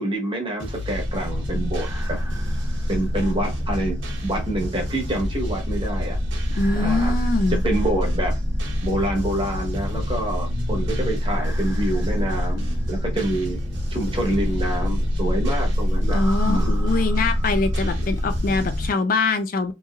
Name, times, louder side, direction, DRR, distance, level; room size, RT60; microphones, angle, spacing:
voice 1, 0.0-2.2 2.9-6.2 6.7-7.1 7.6-8.3 8.8-13.6 13.9-16.7 17.9-18.1, right 1 dB, 30° right, 1.0 m, -27 dB
sound 1, 0.6-18.9, left 2 dB, 75° right, 0.9 m, -32 dB
sound 2, 0.9-18.9, equal, 15° right, 0.6 m, -26 dB
voice 2, 6.5-7.6 16.1-19.7, left 3 dB, 50° left, 0.4 m, -23 dB
3.0 x 2.7 x 2.3 m
head